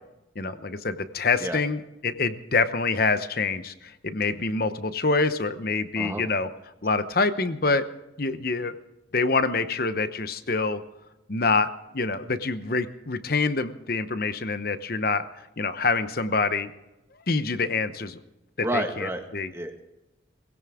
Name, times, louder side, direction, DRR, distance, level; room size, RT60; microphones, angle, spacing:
voice 1, 0.4-6.5 6.8-7.8 8.2-8.7 9.1-10.8 11.3-11.7 11.9-15.2 15.6-16.7 17.3-18.2 18.6-19.5, left 3 dB, 50° left, 11 dB, 0.9 m, -26 dB
voice 2, 18.6-19.2 19.5-19.8, right 1 dB, 15° right, 4 dB, 1.7 m, -30 dB
20.5 x 16.5 x 3.7 m, 0.95 s
head